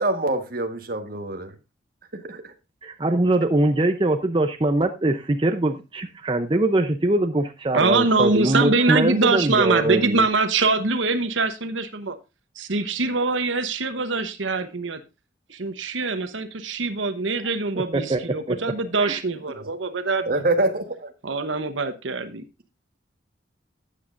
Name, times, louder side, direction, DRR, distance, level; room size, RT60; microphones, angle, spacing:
voice 1, 0.0-1.5 2.1-2.5 19.6-19.7 20.3-21.1, right 2 dB, 50° right, 1.4 m, -25 dB
voice 2, 2.8-10.2 17.9-18.6 19.0-19.2, right 2 dB, 25° right, 0.6 m, -22 dB
voice 3, 7.7-12.2 12.6-15.0 15.5-20.4 21.2-22.4, right 3 dB, 85° right, 1.0 m, -23 dB
13.0 x 8.6 x 2.5 m
head